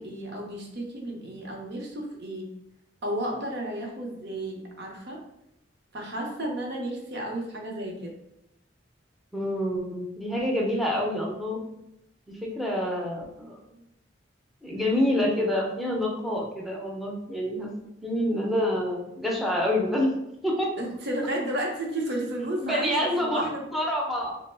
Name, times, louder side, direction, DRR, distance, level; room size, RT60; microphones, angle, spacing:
voice 1, 0.0-2.5 3.0-5.2 5.9-8.1 20.8-23.7, right 1 dB, 60° right, 0 dB, 0.7 m, -32 dB
voice 2, 9.3-11.6 12.3-13.8 14.6-17.7 18.0-20.1 20.4-20.7 22.6-24.4, left 1 dB, ahead, -3 dB, 0.5 m, -27 dB
3.0 x 2.0 x 3.3 m, 0.83 s
head